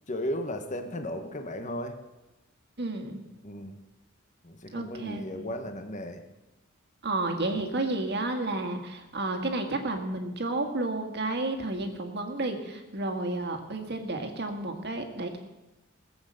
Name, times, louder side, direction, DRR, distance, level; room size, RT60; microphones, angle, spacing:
voice 1, 0.1-2.0 3.4-3.8 4.4-6.2, left 1 dB, 35° left, 6 dB, 1.1 m, -35 dB
voice 2, 2.8-3.2 4.7-5.3 7.0-15.4, right 2 dB, 50° right, 5 dB, 1.8 m, -31 dB
20.0 x 7.9 x 6.5 m, 1.0 s
head